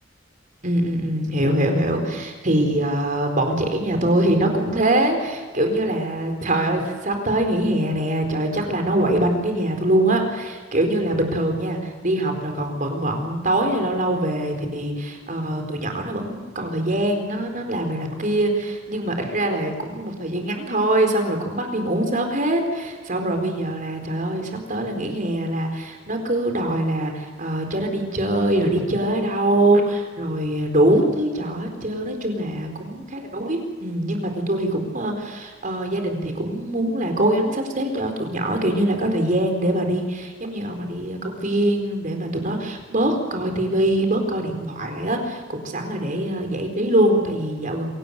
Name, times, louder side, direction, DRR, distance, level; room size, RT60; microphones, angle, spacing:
voice 1, 0.6-47.9, right 1 dB, 45° right, 4 dB, 4.3 m, -23 dB
27.0 x 18.0 x 6.7 m, 1.4 s
head